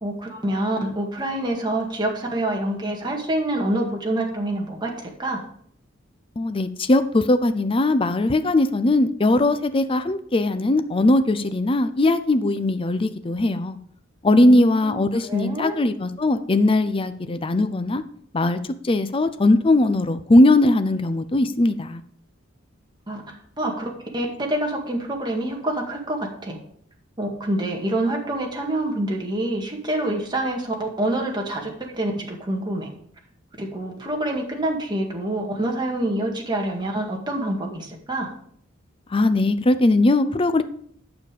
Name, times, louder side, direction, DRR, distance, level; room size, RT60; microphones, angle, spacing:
voice 1, 0.0-4.9 5.2-5.4 14.3-15.8 23.1-23.2 23.6-26.6 27.2-32.9 33.6-38.3, right 1 dB, 25° right, 0 dB, 2.0 m, -26 dB
voice 2, 6.4-13.8 14.2-18.0 18.3-18.6 18.8-22.0 39.1-40.6, left 2 dB, 25° left, 11 dB, 0.5 m, -19 dB
9.2 x 7.2 x 5.0 m, 0.63 s
head